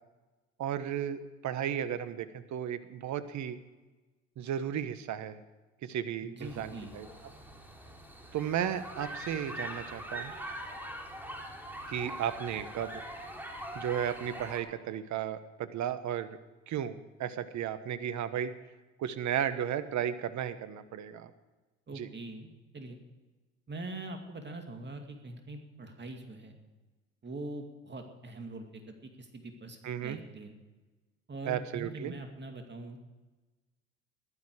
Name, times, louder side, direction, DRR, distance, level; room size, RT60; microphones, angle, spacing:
voice 1, 0.6-3.6 4.4-5.4 5.8-7.1 8.3-10.3 11.9-13.0 13.7-16.4 16.7-18.5 19.0-21.3 21.9-22.1 29.8-30.2 31.4-32.1, right 9 dB, 55° right, 13 dB, 1.2 m, -34 dB
voice 2, 6.2-7.0 21.9-23.0 23.7-26.6 27.2-30.5 31.3-33.0, right 2 dB, 30° right, 4 dB, 2.4 m, -43 dB
sound 1, 6.4-14.6, equal, 5° right, 3.3 m, -43 dB
15.0 x 12.0 x 4.8 m, 1.2 s
hypercardioid pair, 60°, 34 cm